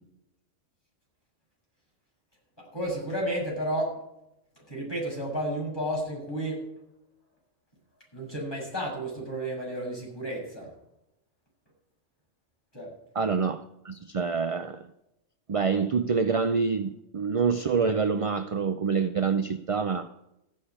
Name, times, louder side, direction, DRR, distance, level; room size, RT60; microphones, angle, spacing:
voice 1, 2.6-3.9 4.7-6.6 8.1-10.7 12.7-12.9, right 1 dB, 20° left, -4 dB, 7.5 m, -32 dB
voice 2, 13.1-14.9 15.5-20.1, right 5 dB, 45° right, 9 dB, 0.4 m, -26 dB
15.0 x 6.5 x 9.9 m, 0.87 s
omnidirectional pair, 1.2 m